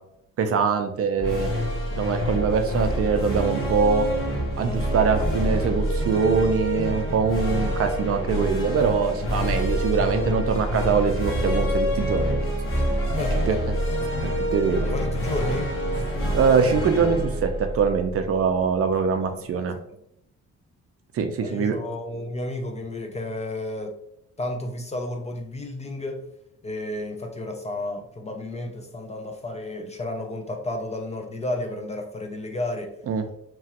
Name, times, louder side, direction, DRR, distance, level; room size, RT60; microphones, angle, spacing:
voice 1, 0.4-1.5 2.0-4.1 4.6-12.5 13.5-13.6 14.2-14.9 16.3-19.7 21.1-21.7 33.1-33.2, right 5 dB, 50° right, 6 dB, 0.5 m, -23 dB
sound 1, 1.1-18.6, equal, 45° left, 0.9 m, -26 dB
voice 2, 13.2-13.7 14.8-15.7 19.2-19.7 21.4-24.0 24.4-26.2 26.6-32.9, left 1 dB, 20° left, 4 dB, 0.4 m, -32 dB
2.9 x 2.3 x 2.8 m, 0.75 s
cardioid pair, 90°, 30 cm